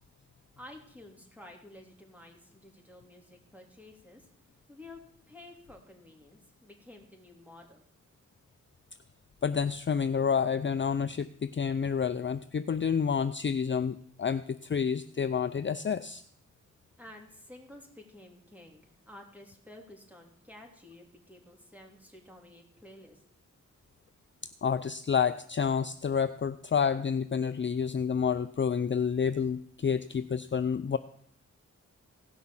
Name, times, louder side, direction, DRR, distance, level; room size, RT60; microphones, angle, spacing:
voice 1, 0.6-4.3 4.7-5.0 5.3-7.8 17.0-23.2, left 1 dB, 5° right, 2 dB, 3.3 m, -52 dB
voice 2, 9.4-16.2 24.6-31.0, left 6 dB, 40° left, 12 dB, 0.5 m, -29 dB
17.0 x 6.2 x 7.2 m, 0.65 s
cardioid pair, 70°, 31 cm